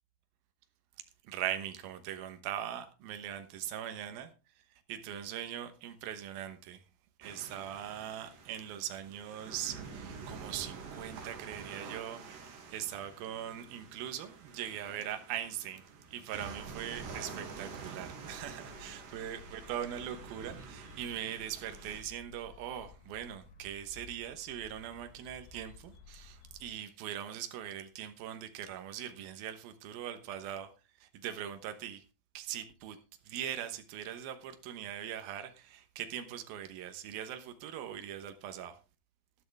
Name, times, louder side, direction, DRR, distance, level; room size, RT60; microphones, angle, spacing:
voice 1, 1.2-4.3 4.9-6.8 7.2-30.7 31.0-32.0 32.3-33.0 33.3-38.8, right 10 dB, 85° right, 9 dB, 2.9 m, -41 dB
sound 1, 7.2-22.0, right 5 dB, 70° right, 3.9 m, -48 dB
sound 2, 18.2-26.7, left 5 dB, 70° left, 3.2 m, -55 dB
12.5 x 12.0 x 3.4 m, 0.30 s
omnidirectional pair, 4.1 m